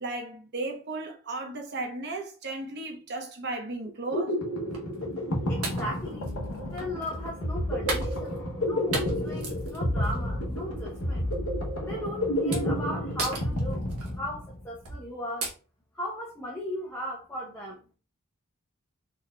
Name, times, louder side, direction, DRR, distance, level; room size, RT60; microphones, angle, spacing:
voice 1, 0.0-4.3, right 2 dB, 50° right, 0.9 m, -35 dB
sound 1, 3.8-14.6, left 1 dB, 70° left, 0.9 m, -30 dB
sound 2, 4.7-5.0 5.6-7.2 7.9-8.7 8.9-10.2 10.6-10.9 11.7-11.9 12.5-12.8 13.2-14.1 14.8-15.1 15.4-15.5, right 3 dB, 80° right, 1.2 m, -34 dB
voice 2, 5.5-6.3 6.6-11.3 11.8-13.8 14.1-15.5 15.9-17.8, left 1 dB, 10° left, 0.7 m, -37 dB
sound 3, 6.1-11.7, left 8 dB, 15° right, 1.1 m, -53 dB
4.1 x 3.4 x 2.3 m
head